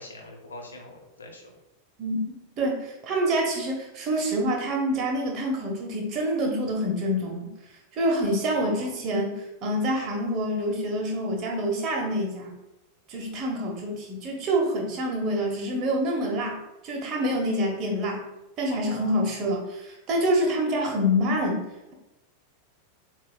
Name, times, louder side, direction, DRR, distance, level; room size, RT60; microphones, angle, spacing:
voice 1, 0.0-1.4 8.6-8.9 18.7-19.3, left 2 dB, 70° left, 1 dB, 1.0 m, -43 dB
voice 2, 2.6-7.5 7.9-12.5 13.1-16.6 16.8-18.2 18.6-21.6, equal, 35° right, 0 dB, 1.2 m, -26 dB
7.4 x 2.7 x 2.3 m, 0.94 s
figure-of-eight pair, 90°, 0 cm